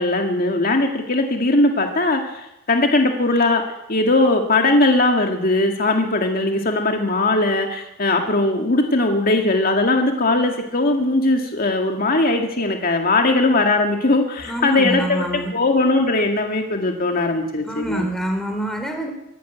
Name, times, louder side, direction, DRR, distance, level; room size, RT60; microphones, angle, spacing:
voice 1, 0.0-3.6 3.9-18.1, left 2 dB, 45° left, 3 dB, 2.1 m, -19 dB
voice 2, 14.4-15.5 17.7-19.1, right 1 dB, ahead, 3 dB, 3.9 m, -26 dB
24.5 x 12.0 x 9.3 m, 0.90 s
head